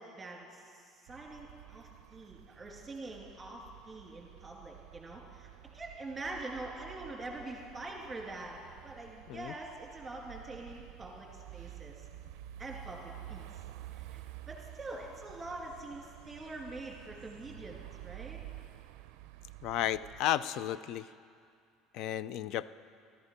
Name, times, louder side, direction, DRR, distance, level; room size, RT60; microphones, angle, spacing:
voice 1, 0.0-5.5 5.7-12.1 12.6-13.5 13.9-18.4, right 2 dB, 15° right, -1 dB, 2.4 m, -45 dB
sound 1, 1.1-20.2, right 14 dB, 80° right, 0.4 m, -50 dB
voice 2, 19.6-21.1 21.9-22.7, left 11 dB, 60° left, 16 dB, 0.4 m, -33 dB
14.0 x 12.5 x 5.2 m, 2.3 s
cardioid pair, 140°, 0 cm